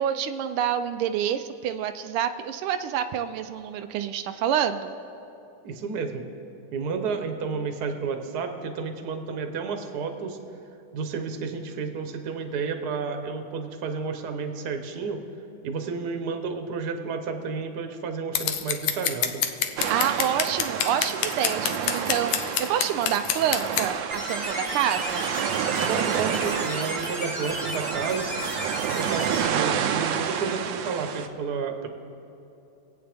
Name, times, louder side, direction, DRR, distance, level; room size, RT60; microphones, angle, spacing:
voice 1, 0.0-4.9 19.9-25.2, right 9 dB, 85° right, 8 dB, 1.5 m, -27 dB
voice 2, 5.6-6.2 6.7-10.4 10.9-15.2 15.6-19.4 25.9-28.3 28.9-31.9, right 5 dB, 55° right, 6 dB, 1.4 m, -31 dB
Scissors, 18.4-23.9, left 9 dB, 85° left, 1.6 m, -27 dB
sound 1, 19.8-31.3, right 8 dB, 70° right, 1.3 m, -29 dB
sound 2, 24.1-29.5, equal, 45° left, 2.6 m, -34 dB
25.5 x 8.8 x 3.5 m, 2.9 s
omnidirectional pair, 2.3 m